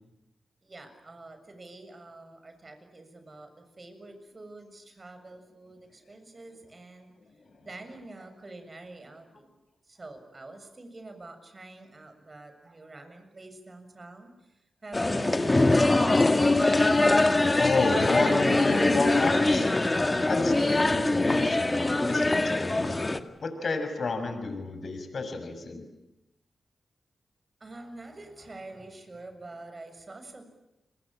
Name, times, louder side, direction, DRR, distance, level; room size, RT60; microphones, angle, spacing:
voice 1, 0.6-7.1 7.7-9.6 9.9-16.4 27.6-30.4, right 2 dB, 40° right, 8 dB, 7.0 m, -46 dB
sound 1, 14.9-23.2, left 2 dB, 30° left, 2.1 m, -23 dB
voice 2, 17.6-19.7 20.3-25.8, left 3 dB, 65° left, 7 dB, 6.1 m, -31 dB
29.5 x 22.5 x 8.9 m, 0.91 s
cardioid pair, 45°, 0 cm